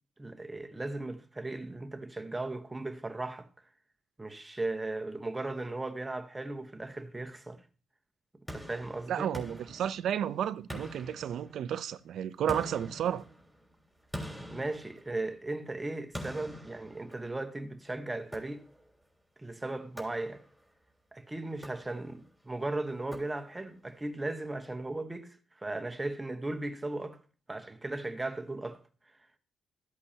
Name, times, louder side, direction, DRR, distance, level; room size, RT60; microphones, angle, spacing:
voice 1, 0.2-3.5 4.2-7.6 8.5-9.3 14.5-18.7 19.4-20.4 21.1-27.2 27.5-28.8, right 2 dB, 15° right, 1.1 m, -37 dB
sound 1, 8.5-10.3 10.7-11.9 12.5-15.5 16.1-17.6 18.3-19.0 20.0-20.7 21.5-22.3 23.1-23.8, equal, 5° left, 3.3 m, -45 dB
voice 2, 9.1-13.2, right 9 dB, 70° right, 0.6 m, -32 dB
13.5 x 8.2 x 2.9 m
cardioid pair, 90°, 0 cm